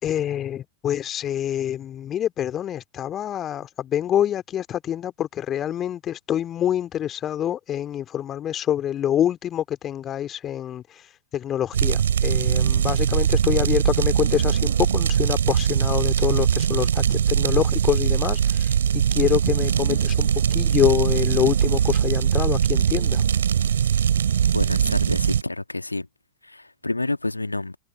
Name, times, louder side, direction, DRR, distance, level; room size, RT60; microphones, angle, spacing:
voice 1, 0.0-10.8 11.3-23.2, left 10 dB, 30° left, 2.5 m, -26 dB
sound 1, 11.7-25.4, right 8 dB, 65° right, 5.1 m, -21 dB
voice 2, 24.5-26.1 26.4-27.8, left 2 dB, 85° left, 2.2 m, -29 dB
figure-of-eight pair, 90°, 0 cm